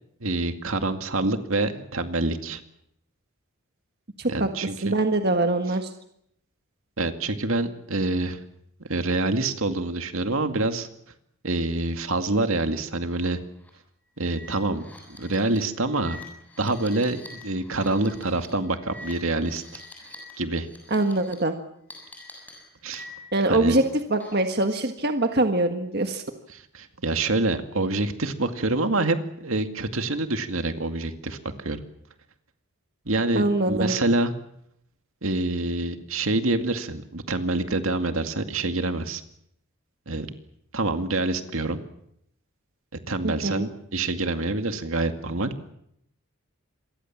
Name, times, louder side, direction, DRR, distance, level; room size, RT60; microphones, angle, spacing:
voice 1, 0.2-2.6 4.2-4.9 7.0-8.4 8.9-10.9 11.4-13.4 14.2-14.8 15.2-16.2 16.6-19.8 20.4-20.7 22.8-23.1 23.5-23.8 26.5-31.8 33.1-34.3 35.2-39.2 40.1-40.3 40.7-41.8 43.1-45.5, right 2 dB, 70° right, 7 dB, 2.2 m, -26 dB
voice 2, 4.2-4.5 4.8-5.9 20.9-21.6 23.3-23.8 24.1-26.2 33.4-33.9 43.2-43.7, right 2 dB, 45° right, 6 dB, 1.6 m, -23 dB
sound 1, 13.0-13.3 13.6-13.7 14.2-20.3 20.6-21.3 21.9-23.4 23.8-24.5, left 2 dB, 5° left, 7.6 m, -46 dB
27.0 x 23.0 x 7.4 m, 0.74 s
head